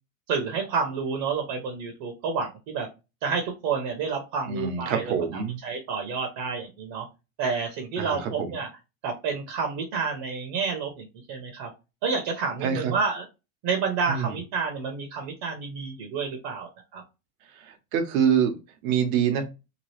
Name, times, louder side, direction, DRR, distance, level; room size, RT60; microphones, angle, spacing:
voice 1, 0.3-2.9 3.2-7.0 7.4-8.7 9.0-11.7 12.0-13.2 13.6-17.0, right 5 dB, 50° right, 4 dB, 0.9 m, -29 dB
voice 2, 4.5-5.6 8.0-8.5 12.6-12.9 14.1-14.4 17.7-18.6 18.8-19.4, right 7 dB, 80° right, 6 dB, 1.0 m, -25 dB
2.9 x 2.3 x 3.1 m, 0.27 s
supercardioid pair, 150°, 41 cm